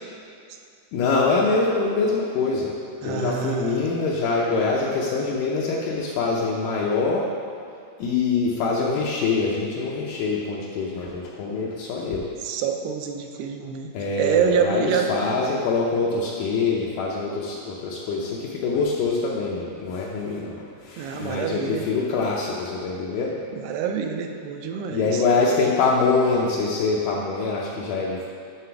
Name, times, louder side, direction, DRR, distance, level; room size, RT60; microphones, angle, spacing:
voice 1, 0.9-2.7 3.0-7.3 8.0-12.2 13.9-23.4 24.9-28.3, left 4 dB, 90° left, -4 dB, 1.8 m, -24 dB
voice 2, 3.0-3.9 12.4-13.9 14.2-15.1 21.0-21.9 23.6-25.2, right 7 dB, 90° right, 4 dB, 2.6 m, -26 dB
9.3 x 3.3 x 5.7 m, 2.4 s
omnidirectional pair, 4.5 m